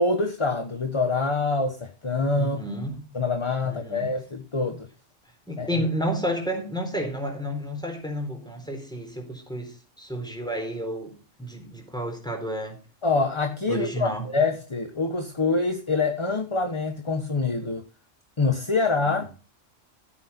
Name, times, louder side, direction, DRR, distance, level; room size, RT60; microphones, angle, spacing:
voice 1, 0.0-2.6 3.1-4.9 5.6-5.8 13.0-17.8 18.4-19.3, left 3 dB, 25° left, 1.1 m, -25 dB
voice 2, 2.4-3.0 3.6-4.1 5.5-11.1 11.4-12.8 13.7-14.3 19.1-19.2, equal, 5° left, 4.0 m, -31 dB
14.0 x 8.9 x 4.3 m
omnidirectional pair, 1.3 m